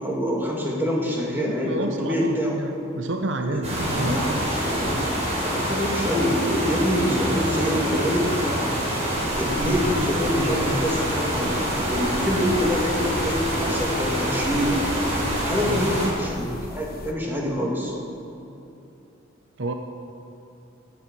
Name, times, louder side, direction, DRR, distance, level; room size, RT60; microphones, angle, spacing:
voice 1, 0.0-2.6 3.5-8.7 9.4-15.0 15.4-17.9, equal, 10° right, -2 dB, 2.1 m, -26 dB
voice 2, 1.3-4.8 15.6-15.8 19.6-19.7, right 2 dB, 65° right, 5 dB, 0.8 m, -30 dB
sound 1, 3.6-16.1, equal, 35° right, 4.0 m, -26 dB
sound 2, 9.3-17.1, left 1 dB, 50° left, 1.1 m, -40 dB
16.5 x 9.9 x 6.1 m, 2.8 s
head